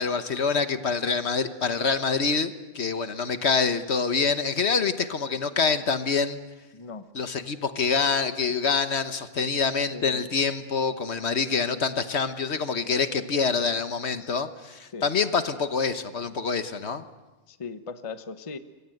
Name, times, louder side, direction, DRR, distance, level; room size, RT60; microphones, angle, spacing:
voice 1, 0.0-6.4 7.1-17.0, left 5 dB, 60° left, 10 dB, 1.4 m, -26 dB
voice 2, 6.7-7.1 9.4-10.3 14.2-14.3 14.9-15.1 17.5-18.6, left 4 dB, 30° left, 10 dB, 0.9 m, -39 dB
26.5 x 23.0 x 7.9 m, 1.2 s
omnidirectional pair, 1.3 m